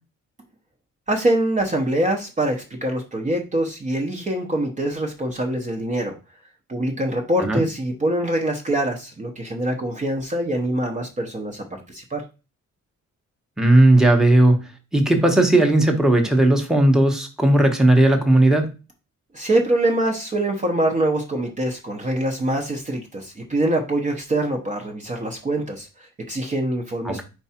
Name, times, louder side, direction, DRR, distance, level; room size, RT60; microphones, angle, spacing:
voice 1, 1.1-6.1 6.7-12.2 19.3-27.2, right 1 dB, 25° right, 1 dB, 0.8 m, -24 dB
voice 2, 13.6-14.6 14.9-18.7 27.0-27.2, right 1 dB, ahead, 3 dB, 1.0 m, -16 dB
4.7 x 4.7 x 4.3 m, 0.30 s
wide cardioid pair, 155°, 30 cm